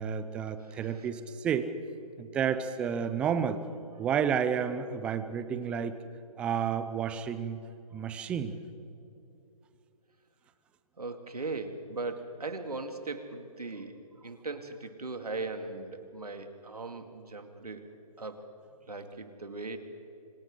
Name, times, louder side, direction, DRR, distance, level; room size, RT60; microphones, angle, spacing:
voice 1, 0.0-1.7 2.2-3.6 4.0-6.0 6.4-7.6 7.9-8.5, right 7 dB, 5° right, 12 dB, 0.4 m, -31 dB
voice 2, 0.6-1.1 8.0-8.1 11.0-17.8 18.2-18.4 18.9-19.8, right 3 dB, 80° right, 6 dB, 2.4 m, -39 dB
28.5 x 25.5 x 3.8 m, 2.8 s
figure-of-eight pair, 140°, 19 cm